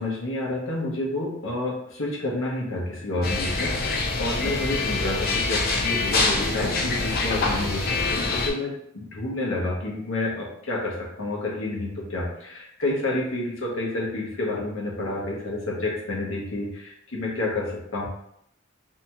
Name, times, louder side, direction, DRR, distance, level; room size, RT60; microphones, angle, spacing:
voice 1, 0.0-18.1, left 2 dB, 90° left, -2 dB, 0.8 m, -29 dB
sound 1, 3.2-8.5, left 3 dB, 50° left, 0.4 m, -25 dB
2.8 x 2.2 x 2.8 m, 0.74 s
head